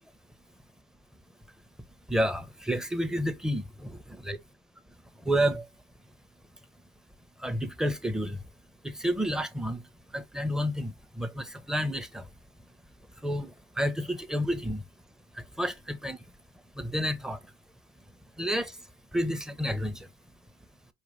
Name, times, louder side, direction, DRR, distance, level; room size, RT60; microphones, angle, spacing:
voice 1, 2.1-4.0 4.2-4.4 5.3-5.6 7.4-8.4 8.8-9.8 10.1-12.2 13.2-13.5 13.8-14.8 15.6-16.2 16.8-17.4 18.4-18.7 19.1-19.9, equal, 5° right, 0.6 m, -30 dB
4.7 x 2.4 x 3.0 m
supercardioid pair, 80°, 13 cm